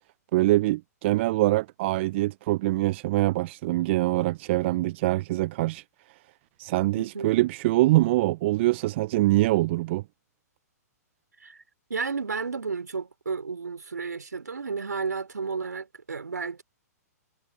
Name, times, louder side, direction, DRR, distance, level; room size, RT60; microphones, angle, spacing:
voice 1, 0.3-5.8 6.6-10.0, right 18 dB, 45° right, 0.6 m, -24 dB
voice 2, 6.9-7.4 11.4-11.6 11.9-16.6, right 5 dB, 80° right, 3.0 m, -32 dB
figure-of-eight pair, 120°, 9 cm